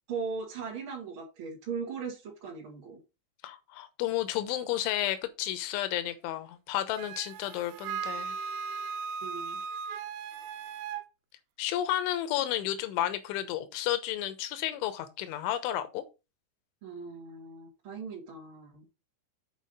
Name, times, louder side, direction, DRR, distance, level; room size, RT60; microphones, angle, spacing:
voice 1, 0.1-3.0 9.2-9.6 16.8-18.8, right 5 dB, 45° right, 1.7 m, -39 dB
voice 2, 3.4-8.4 11.6-16.0, left 12 dB, 80° left, 3.4 m, -32 dB
Wind instrument woodwind instrument, 7.0-11.0, right 6 dB, 90° right, 3.3 m, -37 dB
8.5 x 5.0 x 5.4 m
omnidirectional pair, 5.6 m